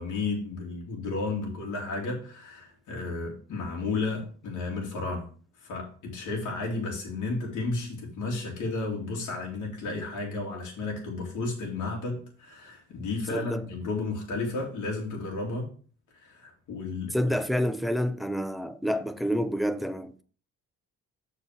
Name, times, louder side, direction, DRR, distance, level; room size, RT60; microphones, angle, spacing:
voice 1, 0.0-5.2 5.6-15.7 16.1-17.4, left 3 dB, 75° left, 2.7 m, -33 dB
voice 2, 13.3-13.6 17.1-20.2, equal, ahead, 0.6 m, -28 dB
6.8 x 4.5 x 5.8 m
cardioid pair, 90°, 30 cm